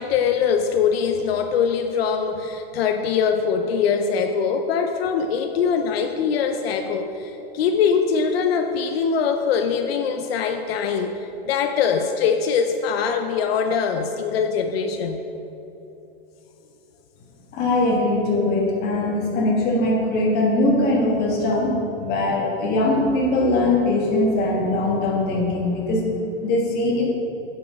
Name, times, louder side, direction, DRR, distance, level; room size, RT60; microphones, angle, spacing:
voice 1, 0.0-15.2, left 6 dB, 80° left, 5 dB, 0.6 m, -22 dB
voice 2, 17.5-26.1 26.4-27.1, left 2 dB, 30° left, -2 dB, 1.6 m, -21 dB
6.8 x 6.0 x 5.1 m, 3.0 s
supercardioid pair, 150°, 30 cm